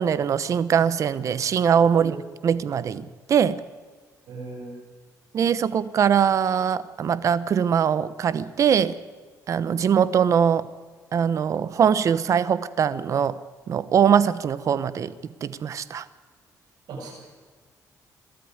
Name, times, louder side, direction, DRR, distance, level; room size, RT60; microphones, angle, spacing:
voice 1, 0.0-3.6 5.3-9.0 9.5-10.7 11.1-13.4 13.7-15.1 15.4-16.0, right 8 dB, 50° right, 16 dB, 1.0 m, -22 dB
voice 2, 4.3-4.7 16.9-17.1, right 3 dB, 80° right, 0 dB, 7.9 m, -37 dB
22.5 x 13.0 x 9.6 m, 1.5 s
cardioid pair, 115°, 7 cm